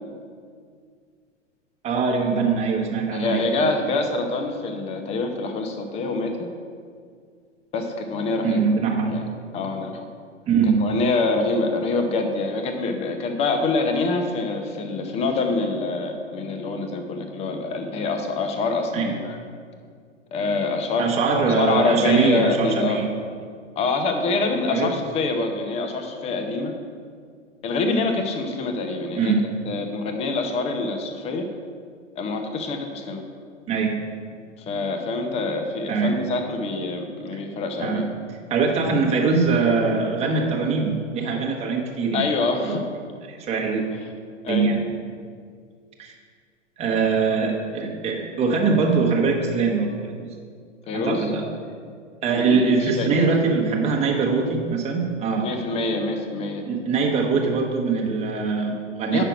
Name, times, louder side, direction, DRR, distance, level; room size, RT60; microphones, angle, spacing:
voice 1, 1.8-3.7 8.4-9.2 10.5-10.8 18.9-19.1 21.0-23.1 24.7-25.0 29.2-29.5 33.7-34.0 35.9-36.2 37.8-38.1 38.5-42.3 42.6-42.8 43.3-43.8 44.5-44.8 46.0-46.1 46.8-50.3 50.9-51.4 52.2-55.5 56.6-59.2, right 4 dB, 15° right, 0 dB, 1.2 m, -22 dB
voice 2, 3.1-6.3 7.7-8.6 9.1-9.2 9.5-10.0 10.8-19.4 20.3-23.0 23.8-26.7 27.6-29.3 29.7-31.5 32.2-33.2 34.7-38.1 42.1-42.9 44.4-44.7 50.9-51.3 52.4-53.3 55.4-56.6 59.1-59.2, left 3 dB, 15° left, 5 dB, 0.7 m, -25 dB
8.9 x 6.0 x 4.9 m, 2.1 s
figure-of-eight pair, 105°, 38 cm